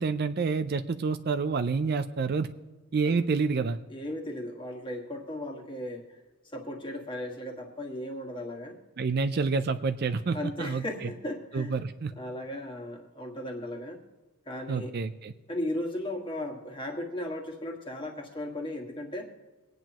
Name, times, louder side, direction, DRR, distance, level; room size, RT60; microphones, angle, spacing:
voice 1, 0.0-2.5 2.9-3.8 9.0-11.1 11.5-12.1 14.7-15.3, right 4 dB, 45° right, 10 dB, 0.4 m, -28 dB
voice 2, 3.9-6.2 6.5-8.8 10.3-11.7 12.1-14.0 14.4-14.9 15.5-19.3, left 1 dB, 20° left, 1 dB, 1.7 m, -36 dB
24.5 x 9.2 x 3.0 m, 1.2 s
head